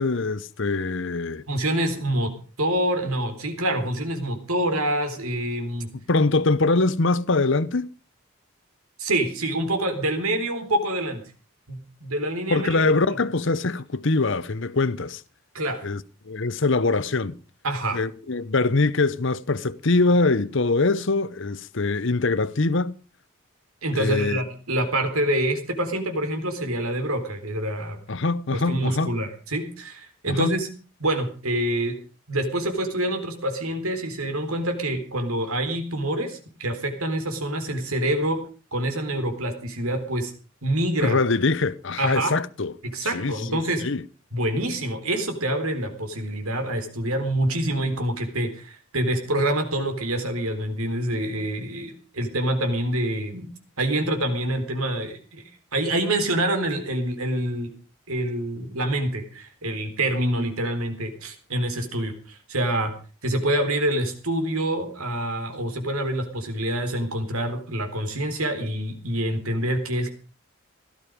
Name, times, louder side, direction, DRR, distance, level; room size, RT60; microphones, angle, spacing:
voice 1, 0.0-1.4 6.1-7.9 12.5-15.2 15.8-17.4 17.9-23.0 23.9-24.4 28.1-29.1 30.3-30.5 41.0-42.7 43.1-44.0, left 3 dB, 60° left, 0.9 m, -23 dB
voice 2, 1.5-2.3 2.6-5.9 9.0-11.2 11.7-12.9 15.5-15.8 17.6-18.0 23.8-28.0 28.5-30.7 31.0-32.0 32.3-38.4 38.7-40.3 40.6-41.2 42.0-42.3 42.9-43.8 44.3-53.5 53.8-55.4 55.7-57.7 58.1-62.9 63.2-70.1, right 1 dB, 90° right, 3.9 m, -26 dB
17.0 x 13.0 x 5.2 m
head